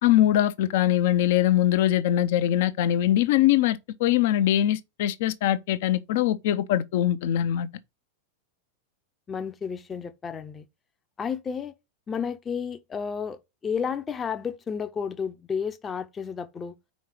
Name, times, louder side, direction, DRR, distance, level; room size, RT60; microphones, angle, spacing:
voice 1, 0.0-7.7, left 12 dB, 50° left, 0.7 m, -22 dB
voice 2, 9.3-10.6 11.2-11.7 12.1-16.7, left 6 dB, 20° left, 0.7 m, -32 dB
5.3 x 4.6 x 5.9 m
figure-of-eight pair, 90°, 0 cm